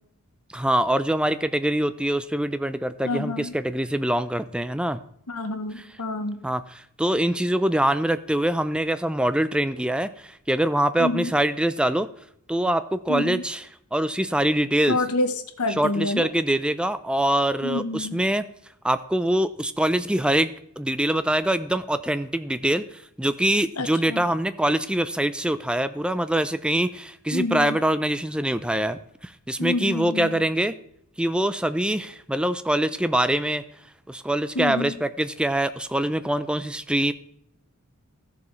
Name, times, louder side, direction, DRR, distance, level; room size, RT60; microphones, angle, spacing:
voice 1, 0.5-5.0 6.4-6.6 7.0-10.1 10.5-12.1 12.5-13.6 13.9-15.0 15.8-18.4 18.8-20.5 20.8-22.8 23.2-30.7 31.2-33.6 34.1-37.1, right 1 dB, 5° right, 12 dB, 0.4 m, -24 dB
voice 2, 3.0-3.6 5.3-6.4 11.0-11.3 13.1-13.4 14.9-16.3 17.6-18.2 23.8-24.3 27.3-27.8 29.6-30.4 34.5-35.0, left 2 dB, 80° left, 8 dB, 1.0 m, -28 dB
15.5 x 6.8 x 3.2 m, 0.69 s
head